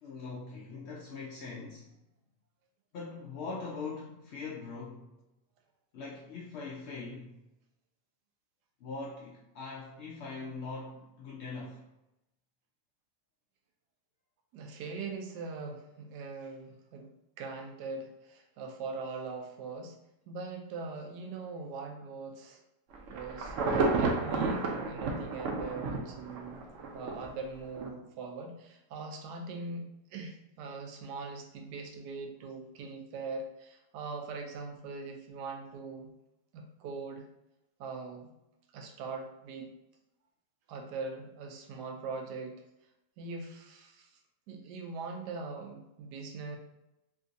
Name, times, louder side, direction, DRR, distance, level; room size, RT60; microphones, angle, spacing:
voice 1, 0.0-1.9 2.9-5.1 5.9-7.4 8.8-11.8, left 4 dB, 75° left, -4 dB, 0.6 m, -42 dB
voice 2, 14.5-20.0 20.3-22.6 23.1-26.6 26.9-36.1 36.5-37.3 37.8-38.3 38.7-39.7 40.7-42.6 43.2-44.2 44.5-46.6, right 4 dB, 90° right, 3 dB, 1.2 m, -41 dB
Insect / Thunder / Rain, 22.9-27.3 27.8-27.9, right 3 dB, 70° right, 0.7 m, -31 dB
3.6 x 2.6 x 2.5 m, 0.88 s
omnidirectional pair, 1.7 m